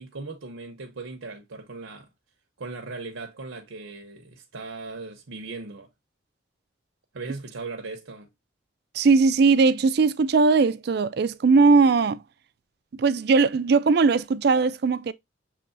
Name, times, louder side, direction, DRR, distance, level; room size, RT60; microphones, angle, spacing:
voice 1, 0.0-2.1 2.6-5.9 7.1-8.3, right 3 dB, 85° right, 0.8 m, -38 dB
voice 2, 8.9-12.2 13.0-15.1, right 4 dB, 55° right, 0.4 m, -19 dB
6.7 x 3.1 x 2.5 m
head